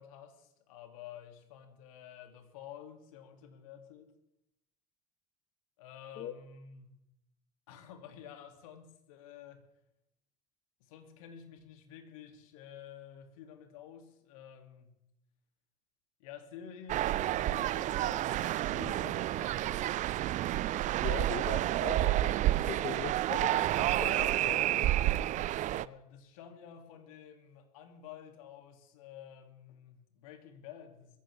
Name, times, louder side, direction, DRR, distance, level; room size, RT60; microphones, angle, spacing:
voice 1, 0.0-4.1 5.8-7.0 7.7-9.6 10.8-15.0 16.2-20.0 25.7-31.2, left 8 dB, 65° left, 5 dB, 2.6 m, -51 dB
sound 1, 16.9-25.9, right 14 dB, 40° right, 0.5 m, -30 dB
voice 2, 21.0-24.6, left 12 dB, 50° left, 11 dB, 0.8 m, -41 dB
22.0 x 15.5 x 3.5 m, 0.83 s
figure-of-eight pair, 70°, 19 cm